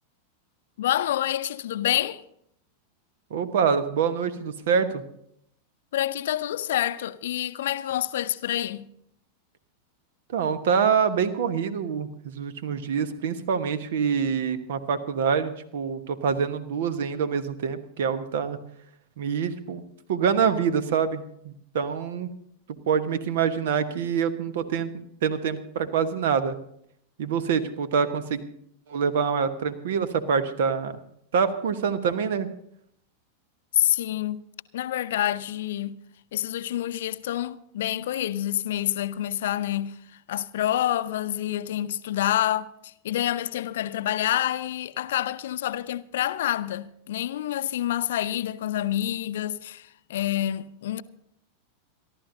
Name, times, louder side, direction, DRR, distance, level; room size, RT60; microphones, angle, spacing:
voice 1, 0.8-2.2 5.9-8.9 33.7-34.4 34.7-35.9 36.3-51.0, left 12 dB, 60° left, 0.6 m, -27 dB
voice 2, 3.3-5.0 10.3-18.6 19.2-19.8 20.1-22.3 22.9-24.9 25.2-26.5 27.2-28.4 28.9-31.0 31.3-32.5, right 6 dB, 55° right, 1.2 m, -25 dB
26.5 x 12.5 x 2.7 m
figure-of-eight pair, 90°, 0 cm